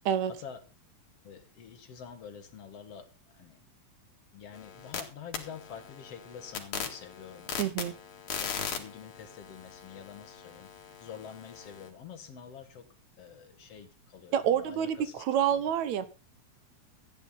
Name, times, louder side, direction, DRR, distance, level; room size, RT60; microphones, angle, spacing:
voice 1, 1.2-3.1 3.3-3.6 4.3-7.9 8.4-10.7 11.0-12.9 13.2-15.2 15.5-15.6, left 7 dB, 60° left, 8 dB, 2.4 m, -47 dB
sound 1, 4.5-5.0 5.3-11.9, left 7 dB, 75° left, 3.3 m, -40 dB
voice 2, 7.6-7.9 14.3-16.1, right 9 dB, 70° right, 14 dB, 2.2 m, -28 dB
14.0 x 9.2 x 5.4 m, 0.32 s
omnidirectional pair, 3.5 m